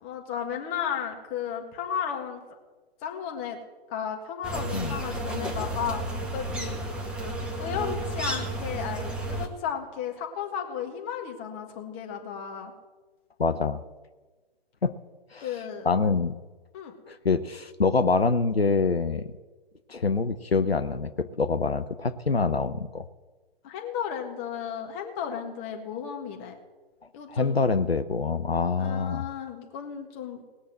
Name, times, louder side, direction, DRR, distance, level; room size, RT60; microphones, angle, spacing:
voice 1, 0.0-2.4 3.0-3.6 3.9-6.8 7.6-12.7 15.4-15.9 16.7-16.9 23.6-26.6 27.1-27.6 28.8-30.4, left 8 dB, 25° left, 3 dB, 1.7 m, -34 dB
sound 1, 4.4-9.5, right 1 dB, 5° right, 0.8 m, -32 dB
voice 2, 13.4-13.8 14.8-14.9 15.3-15.5 15.8-16.3 17.1-19.3 19.9-23.0 27.3-29.2, left 4 dB, 85° left, 12 dB, 0.7 m, -25 dB
19.0 x 6.4 x 7.6 m, 1.3 s
figure-of-eight pair, 125°, 30 cm